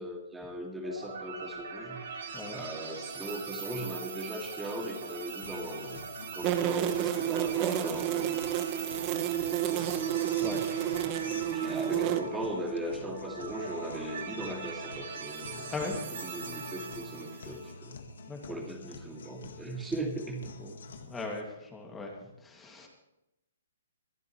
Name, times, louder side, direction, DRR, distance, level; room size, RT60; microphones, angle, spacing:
voice 1, 0.0-2.0 2.5-6.0 6.3-8.5 9.7-10.5 11.2-18.0 18.5-20.5, right 1 dB, 10° right, 1 dB, 2.3 m, -39 dB
sound 1, 0.8-17.7, right 5 dB, 55° right, 3.4 m, -41 dB
Guitar, 5.4-21.4, left 4 dB, 70° left, 1.6 m, -47 dB
sound 2, 6.4-12.2, right 12 dB, 30° right, 1.1 m, -30 dB
voice 2, 20.6-22.9, left 3 dB, 10° left, 1 dB, 2.3 m, -39 dB
22.0 x 12.0 x 3.2 m, 0.89 s
hypercardioid pair, 135°, 0 cm